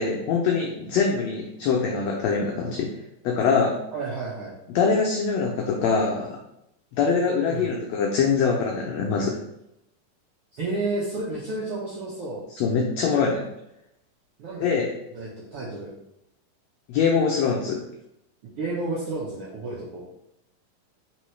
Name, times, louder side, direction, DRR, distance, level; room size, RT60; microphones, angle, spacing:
voice 1, 0.0-2.9 3.2-3.8 4.7-6.4 6.9-9.4 12.6-13.5 14.6-14.9 16.9-17.8, left 5 dB, 90° left, 0 dB, 1.5 m, -23 dB
voice 2, 3.9-4.6 7.5-7.7 10.5-12.4 14.4-14.7 15.1-15.9 18.4-20.0, right 2 dB, 80° right, -5 dB, 1.3 m, -31 dB
4.6 x 3.7 x 3.1 m, 0.82 s
omnidirectional pair, 3.7 m